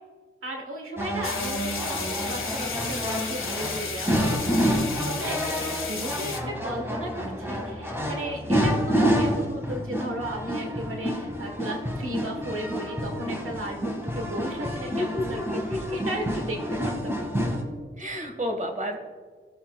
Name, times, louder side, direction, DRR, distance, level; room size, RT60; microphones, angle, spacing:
voice 1, 0.4-4.4 4.8-5.4 5.7-17.5, right 1 dB, 80° right, 2 dB, 1.2 m, -35 dB
sound 1, 1.0-17.6, equal, 10° right, 1.8 m, -28 dB
sound 2, 1.2-6.4, left 4 dB, 75° left, 1.5 m, -33 dB
voice 2, 14.9-16.0 18.0-19.0, left 1 dB, 40° right, 3 dB, 1.6 m, -31 dB
17.0 x 7.1 x 2.3 m, 1.5 s
wide cardioid pair, 105°, 21 cm